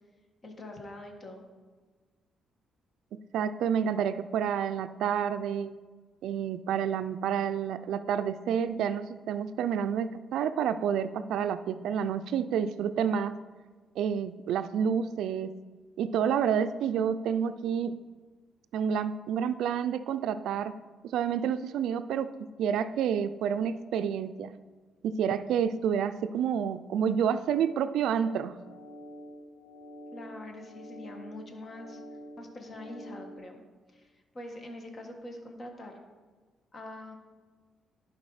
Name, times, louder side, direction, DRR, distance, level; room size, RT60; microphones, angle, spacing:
voice 1, 0.4-1.4 30.1-32.0 32.4-33.6 33.9-36.0 36.7-37.2, left 1 dB, 40° left, 3 dB, 1.6 m, -44 dB
voice 2, 3.1-5.7 6.2-13.4 14.0-15.5 16.0-18.0 18.7-20.8 21.0-22.3 22.6-24.5 25.0-28.5, right 8 dB, 80° right, 12 dB, 0.4 m, -29 dB
sound 1, 28.5-33.4, equal, 75° left, 1.4 m, -47 dB
11.0 x 4.7 x 4.8 m, 1.4 s
cardioid pair, 90°, 0 cm